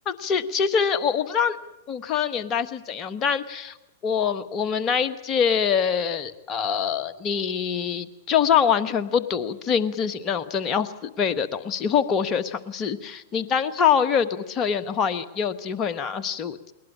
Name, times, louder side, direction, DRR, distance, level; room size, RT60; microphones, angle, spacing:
voice 1, 0.1-1.6 1.9-3.8 4.0-16.7, left 7 dB, 30° left, 11 dB, 1.3 m, -24 dB
21.0 x 20.0 x 8.7 m, 0.97 s
figure-of-eight pair, 100°, 0 cm